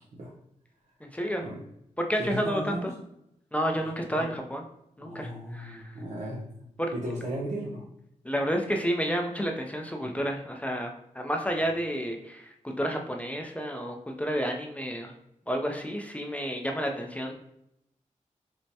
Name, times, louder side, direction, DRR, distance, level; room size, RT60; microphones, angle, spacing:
voice 1, 1.0-1.4 2.0-2.8 3.5-4.6 5.0-5.8 6.8-6.9 8.2-10.9 11.2-15.1 15.5-17.3, equal, 10° left, 2 dB, 0.5 m, -30 dB
voice 2, 2.2-2.9 4.1-4.3 5.0-6.4 6.9-7.8, right 1 dB, 65° right, -5 dB, 0.7 m, -35 dB
4.4 x 2.1 x 2.7 m, 0.79 s
cardioid pair, 60°, 13 cm